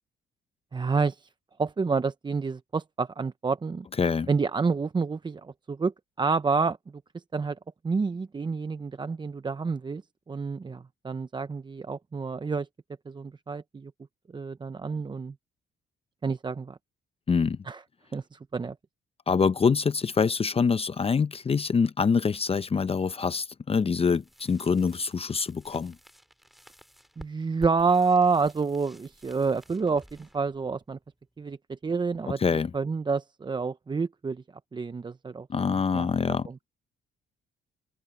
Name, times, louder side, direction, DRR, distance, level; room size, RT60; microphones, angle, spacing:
voice 1, 0.7-1.3 1.6-3.9 4.3-7.6 7.8-10.0 10.3-12.7 13.1-13.9 14.3-15.3 16.2-16.8 17.6-17.8 18.1-18.8 27.2-31.0 31.4-32.4 32.7-34.4 34.7-36.1 36.5-36.6, right 4 dB, 25° right, 0.6 m, -28 dB
voice 2, 4.0-4.3 17.3-17.6 19.3-25.9 32.4-32.7 35.5-36.5, left 5 dB, 30° left, 0.6 m, -25 dB
sound 1, 23.7-31.5, equal, ahead, 2.4 m, -52 dB
cardioid pair, 90°, 20 cm